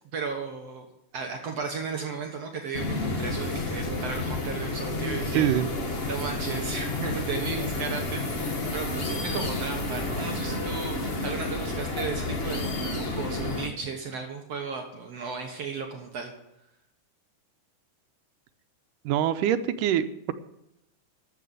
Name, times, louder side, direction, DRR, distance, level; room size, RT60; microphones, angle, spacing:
voice 1, 0.1-0.9 1.1-5.5 6.1-16.3, right 5 dB, 60° right, 2 dB, 2.2 m, -35 dB
sound 1, 2.7-13.7, left 2 dB, 40° left, 0.8 m, -30 dB
voice 2, 5.3-5.7 19.1-20.3, right 11 dB, 90° right, 10 dB, 2.4 m, -24 dB
12.0 x 7.7 x 9.2 m, 0.84 s
omnidirectional pair, 3.6 m